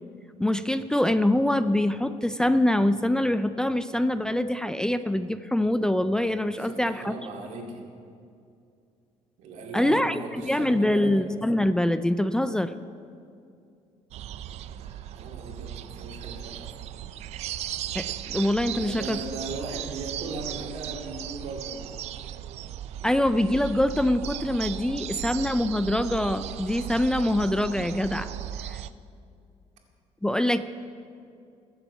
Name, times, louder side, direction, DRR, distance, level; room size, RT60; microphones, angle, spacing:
voice 1, 0.4-7.1 9.7-12.7 17.9-19.2 23.0-28.3 28.7-28.8 30.2-30.6, left 1 dB, 5° left, 12 dB, 0.3 m, -24 dB
voice 2, 6.6-7.9 9.4-11.2 14.6-16.8 18.7-22.0, right 3 dB, 85° right, 0 dB, 2.3 m, -38 dB
sound 1, 14.1-28.9, right 11 dB, 65° right, 0.4 m, -37 dB
21.0 x 7.2 x 5.5 m, 2.4 s
cardioid pair, 140°, 12 cm